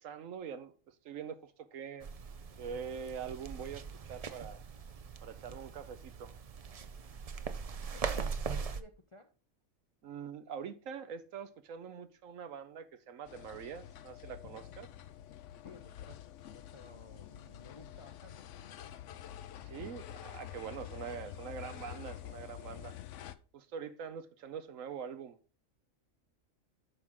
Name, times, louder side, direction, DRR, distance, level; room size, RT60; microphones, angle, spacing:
voice 1, 0.0-2.1 2.6-4.6 5.2-6.4 10.0-14.9 19.6-23.0 23.5-25.6, right 7 dB, 75° right, 1.2 m, -44 dB
sound 1, 2.0-8.8, right 5 dB, 55° right, 0.4 m, -41 dB
voice 2, 7.9-9.3 14.4-14.8 15.6-18.5, left 3 dB, 40° left, 0.4 m, -57 dB
sound 2, 13.3-23.3, left 11 dB, 70° left, 0.9 m, -48 dB
9.5 x 6.1 x 3.7 m
omnidirectional pair, 1.4 m